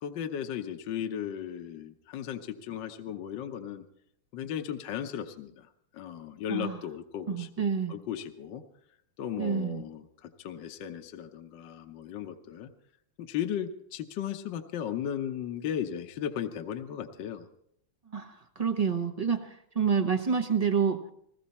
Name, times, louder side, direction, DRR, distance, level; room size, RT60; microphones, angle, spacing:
voice 1, 0.0-3.8 4.3-5.7 5.9-7.5 7.9-8.6 9.2-12.7 13.2-17.5, left 9 dB, 65° left, 5 dB, 1.5 m, -36 dB
voice 2, 7.3-7.9 9.4-9.8 18.1-21.0, right 6 dB, 40° right, 4 dB, 0.5 m, -28 dB
20.5 x 16.5 x 4.2 m, 0.73 s
omnidirectional pair, 2.4 m